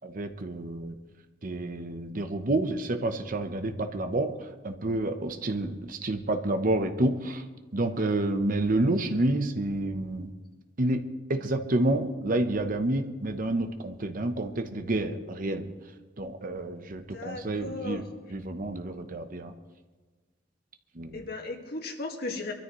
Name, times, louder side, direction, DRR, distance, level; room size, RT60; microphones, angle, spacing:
voice 1, 0.0-1.0 1.4-7.4 7.7-10.3 10.8-11.0 11.3-15.7 16.2-18.0 18.3-19.5 21.0-21.2, right 2 dB, 50° right, 7 dB, 0.9 m, -29 dB
voice 2, 17.1-18.0 21.1-22.5, left 2 dB, 60° left, 3 dB, 1.9 m, -36 dB
23.5 x 13.5 x 3.1 m, 1.3 s
head